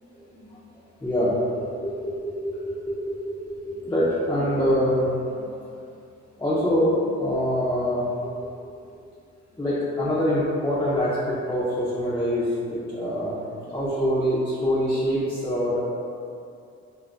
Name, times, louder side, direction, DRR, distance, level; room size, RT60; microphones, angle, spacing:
voice 1, 1.0-1.7 2.0-2.3 2.6-3.1 3.5-5.4 5.7-5.8 6.4-8.1 8.4-8.5 9.6-15.8, equal, 10° left, -11 dB, 0.6 m, -25 dB
2.6 x 2.0 x 3.3 m, 2.4 s
supercardioid pair, 70°, 29 cm